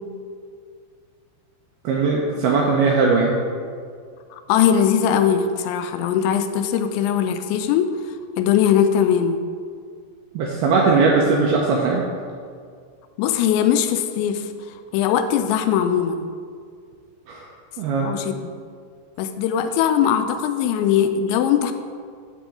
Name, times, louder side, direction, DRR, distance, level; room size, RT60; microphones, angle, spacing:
voice 1, 1.8-3.4 10.4-12.1 17.3-17.4 17.8-18.1, right 4 dB, 85° right, -2 dB, 2.3 m, -19 dB
voice 2, 4.3-7.9 8.4-9.4 13.2-14.5 14.9-16.3 18.0-18.5 19.2-21.7, left 9 dB, 85° left, 8 dB, 2.8 m, -20 dB
8.6 x 7.0 x 3.8 m, 2.1 s
omnidirectional pair, 5.2 m